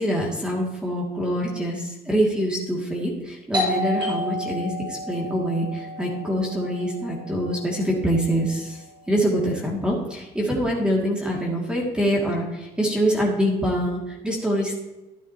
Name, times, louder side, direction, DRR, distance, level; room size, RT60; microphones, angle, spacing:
voice 1, 0.0-8.8 9.1-14.8, equal, 5° right, -2 dB, 2.2 m, -25 dB
Doorbell, 3.5-8.9, equal, 25° right, 3.9 m, -32 dB
12.5 x 9.1 x 2.9 m, 1.1 s
cardioid pair, 110°, 17 cm